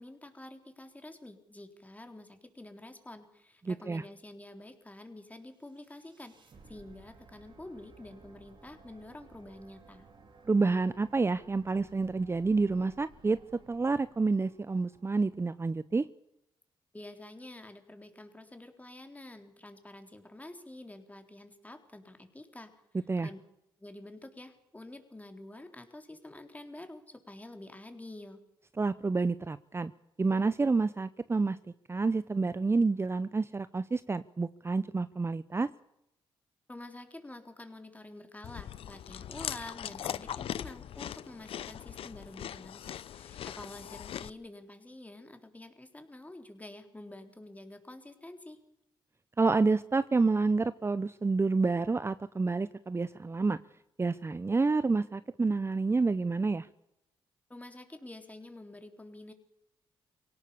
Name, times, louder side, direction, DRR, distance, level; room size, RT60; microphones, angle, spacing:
voice 1, 0.0-10.1 16.9-22.7 23.2-23.4 23.8-28.4 36.7-48.6 57.5-59.3, left 1 dB, 15° left, 6 dB, 3.8 m, -48 dB
voice 2, 3.7-4.0 10.4-13.4 13.7-16.1 23.1-23.3 28.8-29.9 30.2-31.6 31.9-35.7 49.4-53.6 54.0-56.7, right 3 dB, 25° right, 15 dB, 0.7 m, -28 dB
sound 1, 5.6-15.8, right 4 dB, 55° right, 4.5 m, -58 dB
Chewing mastication, 38.4-44.3, left 10 dB, 70° left, 0.7 m, -40 dB
23.5 x 18.0 x 7.1 m, 0.83 s
cardioid pair, 65°, 10 cm